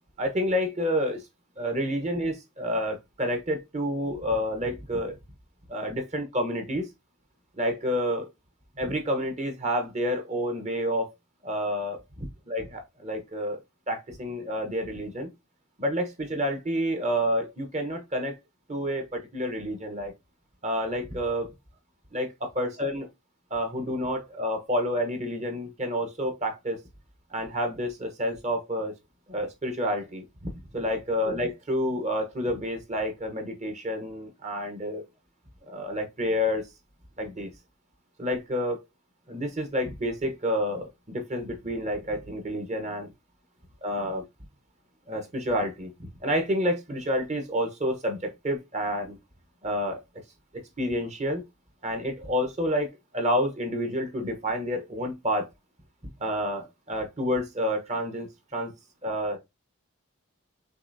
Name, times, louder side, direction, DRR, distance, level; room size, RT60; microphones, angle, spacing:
voice 1, 0.2-1.2 1.6-5.2 5.7-6.9 7.6-8.3 8.8-11.1 11.4-13.6 13.9-15.3 15.8-18.4 18.7-20.1 20.6-21.5 22.1-23.1 23.5-26.8 27.3-28.9 29.3-35.0 35.7-36.6 37.2-37.5 38.2-38.8 39.3-43.1 43.8-44.2 45.1-49.2 49.6-50.0 50.8-51.4 51.8-55.5 56.2-58.7 59.0-59.4, equal, 30° right, 1.0 m, -29 dB
6.5 x 3.0 x 2.7 m
head